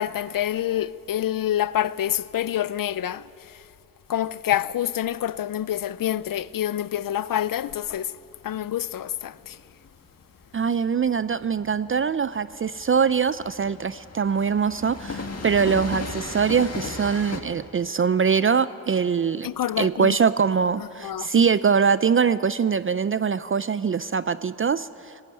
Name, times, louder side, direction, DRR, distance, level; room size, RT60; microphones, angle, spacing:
voice 1, 0.0-3.2 4.1-8.1 8.4-9.6 19.4-20.2 20.8-21.3, left 11 dB, 65° left, 0.6 m, -27 dB
Train, 8.3-17.4, left 3 dB, 45° left, 1.9 m, -37 dB
voice 2, 10.5-19.5 19.8-25.2, right 6 dB, 35° right, 0.4 m, -23 dB
19.0 x 15.5 x 9.5 m
cardioid pair, 80°, 36 cm